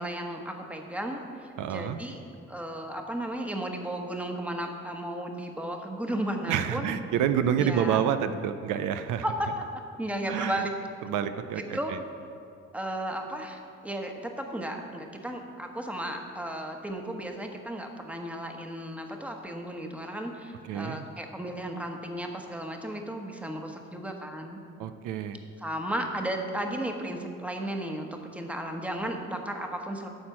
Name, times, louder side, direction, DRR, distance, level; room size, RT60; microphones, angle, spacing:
voice 1, 0.0-2.2 2.5-6.9 7.6-8.0 9.2-9.5 10.0-10.7 11.7-11.9 12.7-24.6 25.6-30.1, right 1 dB, 5° right, 3 dB, 1.1 m, -34 dB
voice 2, 1.6-2.0 6.5-9.2 10.3-10.6 11.0-12.0 20.6-21.1 24.8-25.4, right 9 dB, 85° right, 10 dB, 0.5 m, -28 dB
12.5 x 4.4 x 7.1 m, 2.5 s
cardioid pair, 90°, 30 cm